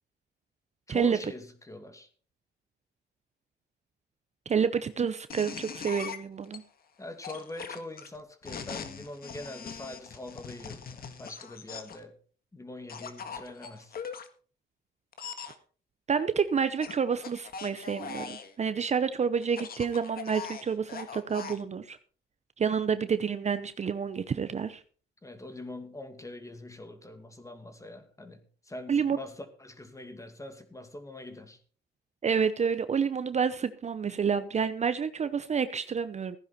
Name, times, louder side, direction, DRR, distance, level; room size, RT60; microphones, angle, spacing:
voice 1, 0.9-2.1 7.0-12.2 12.5-14.0 25.2-31.6, left 1 dB, 15° left, 8 dB, 2.3 m, -43 dB
voice 2, 4.5-6.6 16.1-22.0 22.6-24.8 28.9-29.2 32.2-36.4, right 6 dB, 35° right, 12 dB, 0.8 m, -29 dB
sound 1, 5.3-6.6 7.2-12.0 12.9-14.3 15.1-15.5 16.8-18.5 19.4-21.6, left 6 dB, 50° left, 1.8 m, -41 dB
15.5 x 10.5 x 4.4 m, 0.41 s
cardioid pair, 85°, 19 cm